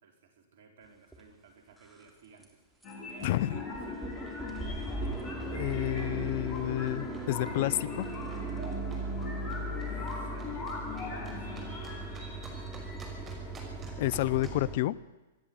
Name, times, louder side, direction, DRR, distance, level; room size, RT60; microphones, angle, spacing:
voice 1, 0.0-2.5 3.0-4.0 9.3-13.2, right 4 dB, 65° right, 4 dB, 4.8 m, -54 dB
sound 1, 1.1-1.2 1.7-2.1 2.4-2.5 2.8-2.9 3.2-14.8, right 2 dB, 5° right, 3.6 m, -38 dB
sound 2, 2.8-13.4, left 4 dB, 30° left, 6.8 m, -41 dB
voice 2, 3.2-3.6 5.5-8.1 14.0-15.0, left 16 dB, 55° left, 21 dB, 0.7 m, -30 dB
sound 3, 4.2-14.6, right 3 dB, 20° right, 5.7 m, -53 dB
25.5 x 10.0 x 9.8 m, 1.1 s
hypercardioid pair, 120°, 0 cm